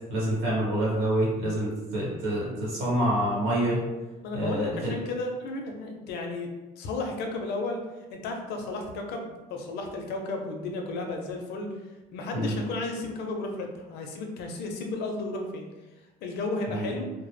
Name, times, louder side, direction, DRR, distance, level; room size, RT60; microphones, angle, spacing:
voice 1, 0.1-3.8 4.3-4.9 12.3-12.5 16.7-16.9, right 1 dB, 85° right, -6 dB, 1.2 m, -27 dB
voice 2, 4.2-6.5 6.8-7.8 8.1-11.7 12.1-15.6 16.2-17.1, left 2 dB, 80° left, 3 dB, 0.5 m, -33 dB
2.1 x 2.0 x 3.2 m, 1.1 s
cardioid pair, 110°, 17 cm